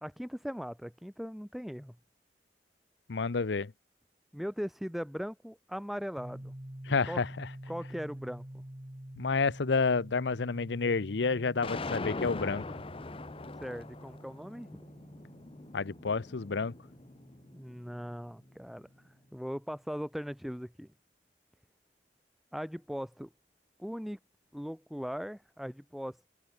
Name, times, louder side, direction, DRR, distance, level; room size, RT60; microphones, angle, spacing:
voice 1, 0.0-2.0 4.3-6.5 7.1-7.2 7.7-8.4 13.6-14.8 17.5-18.9 19.3-20.9 22.5-23.3 23.8-24.2 24.5-26.3, equal, ahead, 1.1 m, -39 dB
voice 2, 3.1-3.7 6.8-7.5 9.2-12.6 15.7-16.7, left 4 dB, 90° left, 0.7 m, -30 dB
sound 1, 6.2-19.8, right 1 dB, 25° right, 1.7 m, -49 dB
sound 2, 11.6-17.8, left 3 dB, 30° left, 0.9 m, -42 dB
head